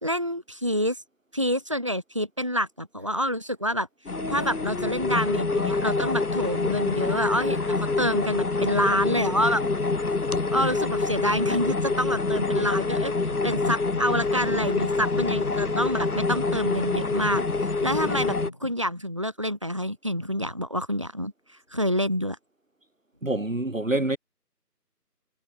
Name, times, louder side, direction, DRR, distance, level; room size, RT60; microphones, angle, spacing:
voice 1, 0.0-1.0 1.3-3.9 4.3-9.6 10.5-13.1 13.4-21.3 21.7-22.4, equal, 20° right, 2.5 m, -27 dB
sound 1, 3.0-3.4 4.2-6.8 7.1-8.1 8.5-9.4, right 1 dB, 90° right, 8.0 m, -41 dB
sound 2, 4.1-18.5, left 3 dB, 65° left, 1.3 m, -26 dB
sound 3, 9.0-9.7 9.9-18.8, left 1 dB, 5° left, 4.0 m, -43 dB
voice 2, 23.2-24.2, right 2 dB, 50° right, 2.8 m, -26 dB
figure-of-eight pair, 180°, 49 cm